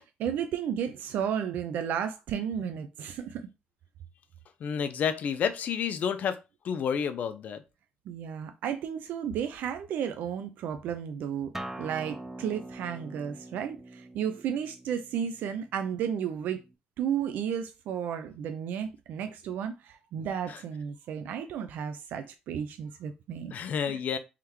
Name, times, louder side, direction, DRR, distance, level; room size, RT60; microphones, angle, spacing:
voice 1, 0.2-3.5 8.1-11.5 11.8-16.6 17.0-23.5 23.9-24.0, right 8 dB, 75° right, 0.4 m, -33 dB
voice 2, 4.6-6.4 6.6-7.6 20.5-20.6 23.5-24.2, left 7 dB, 60° left, 0.6 m, -30 dB
Acoustic guitar, 11.5-16.7, right 1 dB, 10° right, 0.4 m, -44 dB
3.6 x 3.3 x 3.0 m
cardioid pair, 120°, 3 cm